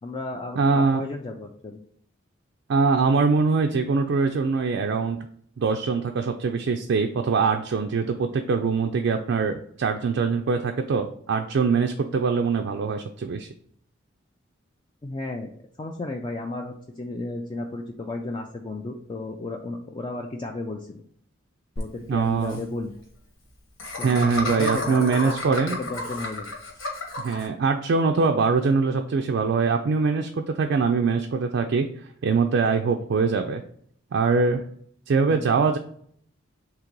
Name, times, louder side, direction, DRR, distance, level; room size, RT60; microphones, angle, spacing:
voice 1, 0.0-1.8 15.0-15.5 15.8-21.0 21.8-22.9 23.9-25.3 25.8-26.5 35.3-35.5, left 2 dB, 25° left, 2 dB, 0.3 m, -33 dB
voice 2, 0.6-1.0 2.7-5.3 5.6-13.5 22.1-22.6 24.0-25.8 27.2-31.9 32.2-33.6 34.1-34.6 35.1-35.8, right 4 dB, 60° right, 4 dB, 0.3 m, -23 dB
Laughter, 21.8-21.9 22.1-22.2 22.4-22.6 23.8-27.5, left 2 dB, 85° left, 1.4 m, -32 dB
3.8 x 2.9 x 4.5 m, 0.62 s
head